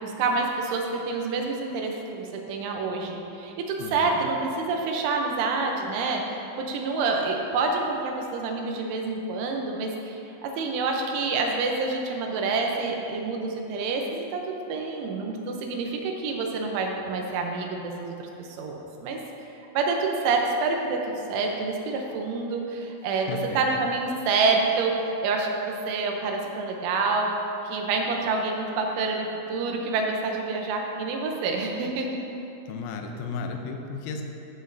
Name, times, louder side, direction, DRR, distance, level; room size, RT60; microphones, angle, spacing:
voice 1, 0.0-19.2 19.7-27.3 27.6-32.1, right 3 dB, 80° right, 1 dB, 3.1 m, -27 dB
voice 2, 3.8-4.3 23.3-23.8 32.7-34.2, left 4 dB, 90° left, 4 dB, 3.3 m, -34 dB
15.5 x 6.1 x 2.7 m, 2.9 s
omnidirectional pair, 5.7 m